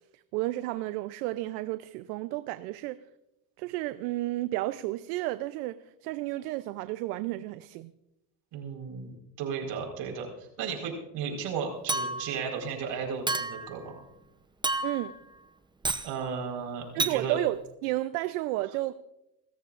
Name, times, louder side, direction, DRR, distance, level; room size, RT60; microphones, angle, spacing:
voice 1, 0.3-3.0 3.6-7.9 14.8-15.2 16.9-18.9, right 17 dB, 80° right, 0.7 m, -32 dB
voice 2, 8.5-14.0 16.0-17.4, right 6 dB, 65° right, 4.7 m, -35 dB
Chink clink, 11.9-12.4 13.3-13.7 14.6-15.1 15.8-16.1 17.0-17.2, right 2 dB, 10° right, 0.7 m, -30 dB
28.0 x 13.5 x 2.5 m
supercardioid pair, 95°, 46 cm